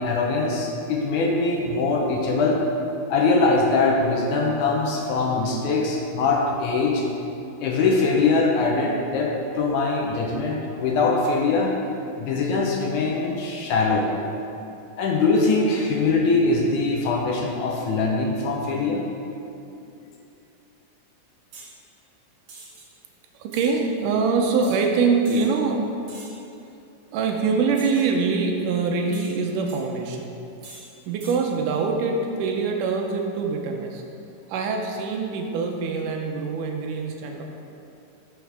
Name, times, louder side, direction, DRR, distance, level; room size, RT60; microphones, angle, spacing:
voice 1, 0.0-2.6 3.1-7.1 7.6-11.7 12.2-14.1 15.0-19.0, left 3 dB, 75° left, -1 dB, 2.1 m, -22 dB
sound 1, 21.5-21.7 22.5-22.9 23.5-23.7 24.6-24.8 25.2-25.5 26.1-26.4 27.7-28.1 29.1-29.8 30.6-30.9 31.2-31.4, right 3 dB, 50° right, 1.7 m, -44 dB
voice 2, 23.4-25.9 27.1-30.4 31.1-34.0 34.5-37.4, right 4 dB, 80° right, 2 dB, 2.1 m, -24 dB
10.5 x 6.3 x 3.4 m, 2.7 s
omnidirectional pair, 3.9 m